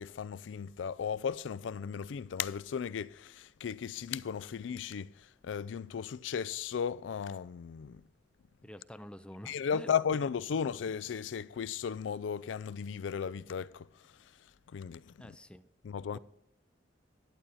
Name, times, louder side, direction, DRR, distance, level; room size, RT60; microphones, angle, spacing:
voice 1, 0.0-8.0 9.5-15.4 15.8-16.2, left 7 dB, 75° left, 0.4 m, -36 dB
voice 2, 8.6-9.9 10.5-10.6 15.2-15.7 16.1-16.2, left 1 dB, 5° left, 0.4 m, -48 dB
11.5 x 8.9 x 4.1 m
head